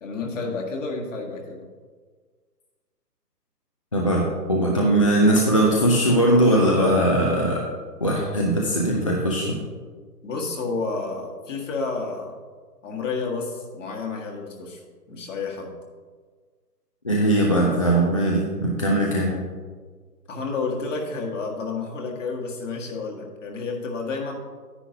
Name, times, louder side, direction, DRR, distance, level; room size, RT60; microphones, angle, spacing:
voice 1, 0.0-1.7 10.2-12.3 12.8-14.8 15.1-15.8 20.3-24.3, left 4 dB, 50° left, 0 dB, 1.8 m, -30 dB
voice 2, 3.9-7.6 8.0-9.6 17.0-19.3, right 1 dB, 20° left, -2 dB, 0.5 m, -20 dB
9.9 x 9.6 x 2.8 m, 1.5 s
figure-of-eight pair, 140°, 49 cm